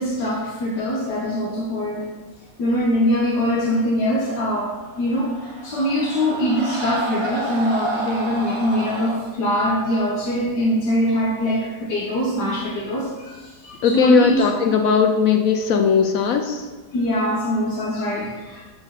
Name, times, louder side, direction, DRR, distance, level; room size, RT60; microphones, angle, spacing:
voice 1, 0.0-2.1 2.6-14.4 16.9-18.6, equal, 85° left, -3 dB, 1.6 m, -23 dB
Screaming, 4.8-9.2, right 2 dB, 25° right, 0.6 m, -31 dB
voice 2, 13.8-16.7, left 6 dB, 65° left, 4 dB, 0.9 m, -18 dB
6.7 x 4.5 x 5.7 m, 1.3 s
omnidirectional pair, 1.7 m